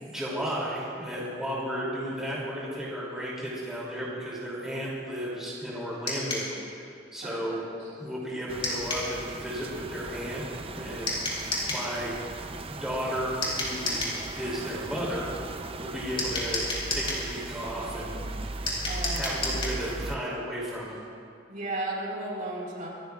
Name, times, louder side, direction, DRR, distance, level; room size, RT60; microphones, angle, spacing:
voice 1, 0.0-10.4 10.7-12.2 12.7-16.6 16.9-18.2 19.1-21.0, equal, 5° right, -7 dB, 2.7 m, -34 dB
sound 1, 6.1-6.5 8.6-9.1 11.1-11.9 13.4-14.2 16.2-17.2 18.7-19.8, left 2 dB, 30° left, 3.9 m, -30 dB
voice 2, 7.2-7.6 18.9-19.6 21.5-22.9, right 2 dB, 45° right, -4 dB, 3.9 m, -35 dB
sound 2, 8.5-20.2, right 2 dB, 30° right, 0.5 m, -38 dB
26.5 x 14.0 x 2.4 m, 2.4 s
head